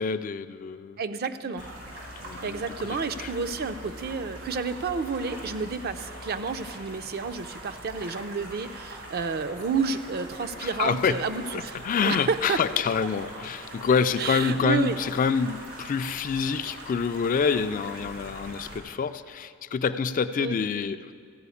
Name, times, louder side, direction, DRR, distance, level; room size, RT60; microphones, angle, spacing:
voice 1, 0.0-1.0 2.2-3.3 10.6-11.2 11.5-21.1, left 6 dB, 40° left, 11 dB, 0.3 m, -27 dB
voice 2, 1.0-1.6 2.4-12.6 14.2-15.0 20.4-20.6, right 5 dB, 50° right, 11 dB, 0.5 m, -30 dB
sound 1, 1.6-18.8, right 1 dB, 85° right, 2.8 m, -42 dB
14.0 x 4.9 x 8.4 m, 2.2 s
head